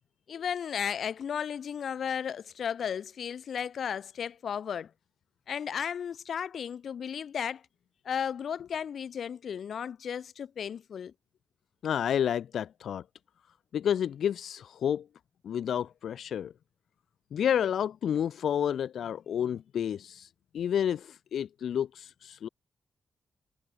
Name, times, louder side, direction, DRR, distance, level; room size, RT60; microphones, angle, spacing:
voice 1, 0.3-4.9 5.5-7.6 8.1-11.1, left 8 dB, 65° left, 1.9 m, -34 dB
voice 2, 11.8-13.0 13.7-15.0 15.4-16.5 17.3-20.3 20.5-22.5, left 9 dB, 85° left, 0.5 m, -30 dB
wide cardioid pair, 150°, 0 cm